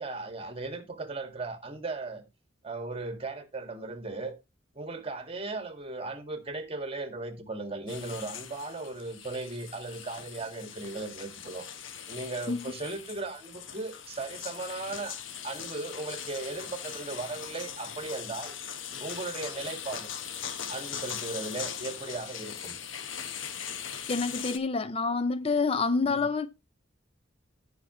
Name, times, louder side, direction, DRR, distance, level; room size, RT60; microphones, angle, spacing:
voice 1, 0.0-2.2 2.6-4.4 4.8-11.7 12.1-15.1 15.4-18.6 19.0-20.1 20.7-22.8 26.1-26.3, right 3 dB, 30° right, 1.8 m, -37 dB
sound 1, 7.9-24.6, left 8 dB, 85° left, 1.1 m, -40 dB
voice 2, 24.1-26.5, left 4 dB, 30° left, 0.5 m, -27 dB
17.5 x 5.8 x 3.0 m
head